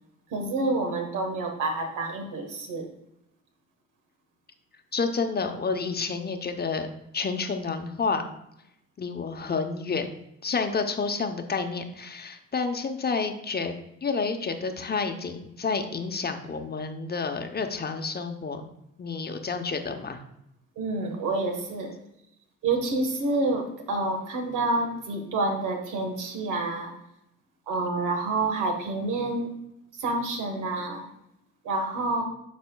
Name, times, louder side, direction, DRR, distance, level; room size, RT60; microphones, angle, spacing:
voice 1, 0.3-2.9 20.8-21.9 22.6-26.9 27.7-29.5 30.0-31.1 31.6-32.2, right 2 dB, 90° right, 3 dB, 1.4 m, -28 dB
voice 2, 4.9-6.9 7.1-8.2 9.0-10.1 10.4-13.7 14.0-18.6 19.0-20.2, left 4 dB, 30° left, 6 dB, 0.8 m, -29 dB
11.5 x 4.2 x 2.3 m, 0.81 s
cardioid pair, 90°, 30 cm